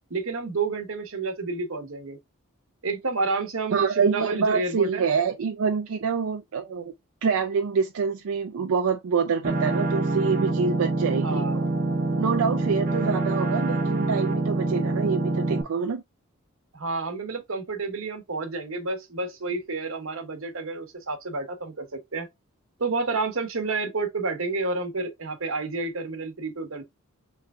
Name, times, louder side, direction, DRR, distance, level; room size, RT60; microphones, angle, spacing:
voice 1, 0.1-2.2 2.8-5.1 11.2-11.7 12.6-12.7 16.7-22.3 22.8-26.8, right 3 dB, 70° right, 1.0 m, -30 dB
voice 2, 3.7-6.9 7.2-11.4 12.2-16.0, right 5 dB, 90° right, 0.4 m, -26 dB
sound 1, 9.4-15.6, right 2 dB, 40° right, 0.8 m, -25 dB
3.4 x 3.1 x 3.6 m
head